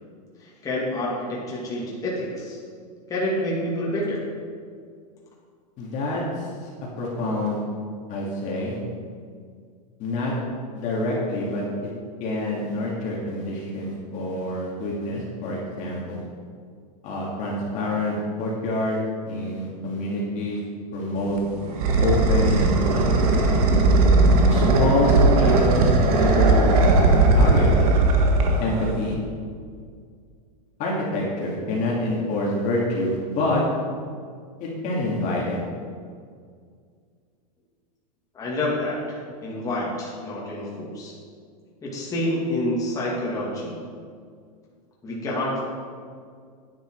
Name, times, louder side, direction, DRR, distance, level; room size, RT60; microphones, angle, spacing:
voice 1, 0.4-2.6 3.1-4.2 38.3-41.1 41.8-43.8 45.0-45.6, left 1 dB, 15° left, -5 dB, 2.3 m, -28 dB
voice 2, 5.8-6.5 7.0-7.6 8.1-8.8 10.0-10.3 10.7-11.6 12.2-16.3 17.0-19.0 19.2-20.6 20.9-21.4 22.0-23.1 24.5-26.8 27.1-27.7 28.6-29.2 30.8-33.6 34.6-35.6, left 1 dB, 35° left, -4 dB, 2.3 m, -26 dB
sound 1, 21.2-29.1, right 2 dB, 60° right, 1.6 m, -18 dB
10.0 x 9.1 x 4.7 m, 2.1 s
supercardioid pair, 145°, 21 cm